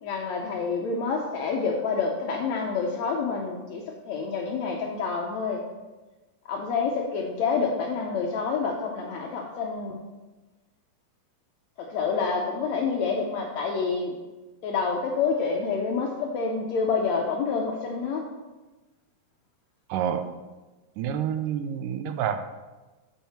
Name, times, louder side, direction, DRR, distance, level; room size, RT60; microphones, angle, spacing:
voice 1, 0.0-5.6 6.5-10.0 11.8-14.1 14.6-18.2, left 5 dB, 80° left, 0 dB, 1.6 m, -28 dB
voice 2, 19.9-20.3 21.0-22.4, right 9 dB, 80° right, 8 dB, 2.1 m, -28 dB
7.2 x 5.3 x 5.7 m, 1.2 s
omnidirectional pair, 4.0 m